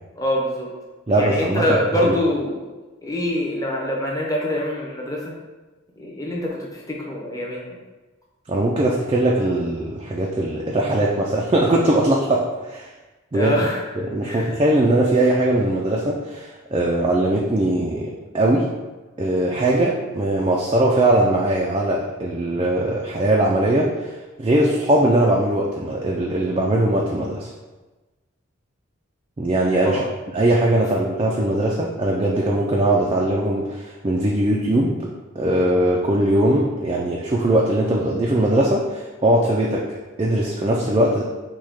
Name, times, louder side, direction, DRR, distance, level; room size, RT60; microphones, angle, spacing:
voice 1, 0.1-0.7 1.1-2.6 3.0-5.3 6.0-7.8 13.3-13.8 14.2-14.5 19.5-19.6 29.8-30.1, left 1 dB, 15° left, -3 dB, 0.7 m, -24 dB
voice 2, 1.1-1.8 2.0-2.2 8.5-12.9 13.3-13.5 14.0-18.7 19.2-27.5 29.4-30.0 30.3-39.8 40.2-41.2, right 1 dB, 25° right, -3 dB, 0.3 m, -20 dB
6.2 x 2.2 x 3.5 m, 1.2 s
head